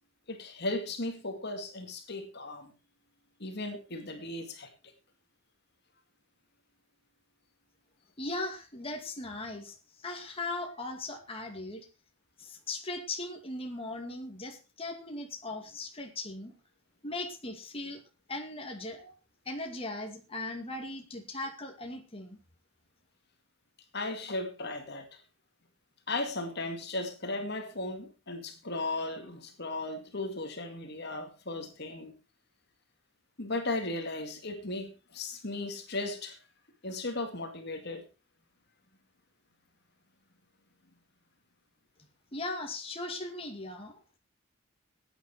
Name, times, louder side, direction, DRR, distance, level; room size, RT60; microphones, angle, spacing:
voice 1, 0.3-2.7 3.4-4.7 23.9-25.2 26.1-32.2 33.4-36.4 36.8-38.0, left 2 dB, 50° left, 5 dB, 2.1 m, -36 dB
voice 2, 8.2-9.8 10.0-11.9 12.4-16.5 17.0-18.0 18.3-19.1 19.5-22.4 42.3-44.2, left 2 dB, 25° left, 3 dB, 2.3 m, -38 dB
16.0 x 9.6 x 4.4 m, 0.30 s
head